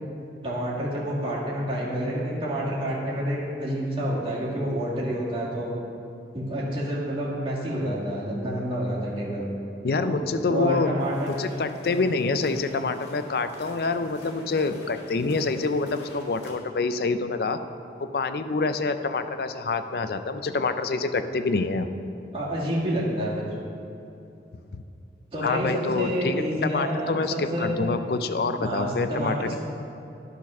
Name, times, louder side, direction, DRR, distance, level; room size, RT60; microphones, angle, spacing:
voice 1, 0.4-5.7 6.3-9.4 10.0-10.2 10.5-11.4 22.3-23.5 25.3-27.2 27.5-27.7 28.6-29.5, equal, 30° right, -7 dB, 1.8 m, -28 dB
voice 2, 9.8-10.9 11.2-17.6 18.0-21.9 25.4-29.5, left 3 dB, 60° left, 9 dB, 0.4 m, -26 dB
sound 1, 11.0-16.5, left 1 dB, 85° left, 1.8 m, -48 dB
11.0 x 4.1 x 6.0 m, 2.7 s
head